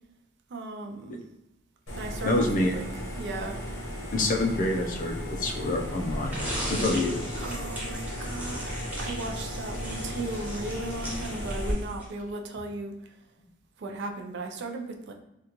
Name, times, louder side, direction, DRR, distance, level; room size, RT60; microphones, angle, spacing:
voice 1, 0.5-1.2 2.0-2.5 2.7-2.9 3.2-3.6 7.3-12.9 13.8-15.1, right 2 dB, 60° right, 3 dB, 0.4 m, -36 dB
sound 1, 1.9-11.7, equal, 75° left, 0.9 m, -35 dB
voice 2, 2.2-2.7 4.1-6.4 6.7-7.2, left 2 dB, 45° left, 2 dB, 0.4 m, -27 dB
sound 2, 6.3-12.2, equal, 10° right, 0.8 m, -37 dB
3.7 x 2.2 x 2.9 m, 0.90 s
head